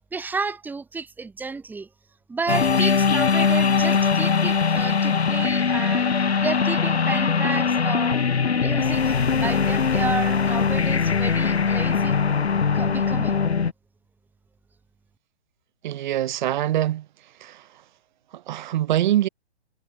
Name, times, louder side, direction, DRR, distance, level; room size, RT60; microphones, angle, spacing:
voice 1, 0.1-1.9 2.3-8.3 8.6-12.2 12.7-13.4, right 4 dB, 5° right, 2.1 m, -31 dB
sound 1, 2.5-13.7, left 5 dB, 70° left, 3.0 m, -21 dB
voice 2, 15.8-17.1 17.4-17.7 18.3-19.3, right 13 dB, 45° right, 5.3 m, -24 dB
figure-of-eight pair, 130°, 33 cm